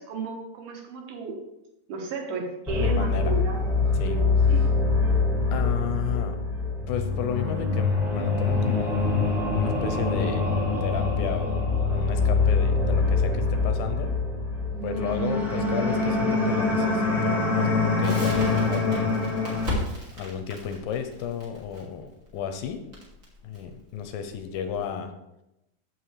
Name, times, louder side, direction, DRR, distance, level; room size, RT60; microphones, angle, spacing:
voice 1, 0.0-1.4 1.9-3.6 4.0-4.7 5.0-5.1, right 4 dB, 75° right, 1 dB, 3.3 m, -34 dB
sound 1, 2.7-19.7, left 3 dB, ahead, 0.7 m, -24 dB
voice 2, 2.8-3.3 4.0-4.2 5.5-6.4 6.9-10.5 10.8-11.7 11.9-14.2 14.8-19.3 20.1-22.8 23.4-25.1, left 8 dB, 80° left, 7 dB, 2.3 m, -33 dB
Crackle, 18.0-24.8, left 1 dB, 25° right, 2.3 m, -36 dB
15.0 x 5.7 x 3.3 m, 0.90 s
omnidirectional pair, 4.4 m